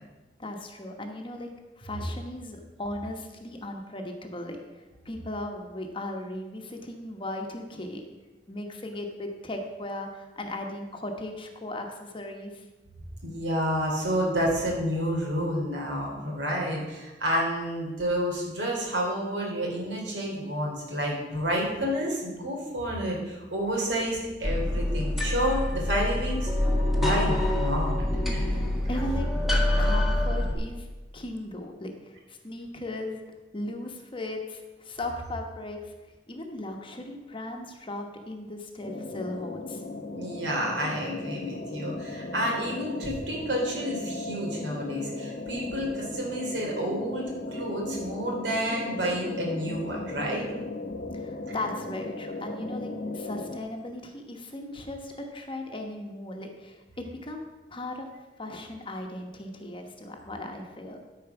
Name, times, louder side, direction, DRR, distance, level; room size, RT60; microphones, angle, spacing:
voice 1, 0.4-1.5 1.8-8.0 8.5-12.6 28.5-30.9 31.1-33.2 33.5-35.9 36.3-39.8 51.1-58.1 58.4-61.0, left 1 dB, 30° left, 3 dB, 1.1 m, -37 dB
voice 2, 13.2-26.5 26.8-27.9 28.3-28.5 40.1-50.5, equal, 75° right, -1 dB, 3.0 m, -30 dB
sound 1, 24.4-30.5, left 1 dB, ahead, 1.4 m, -26 dB
sound 2, 38.8-53.6, left 2 dB, 50° left, 0.9 m, -37 dB
12.5 x 4.7 x 5.9 m, 1.2 s
head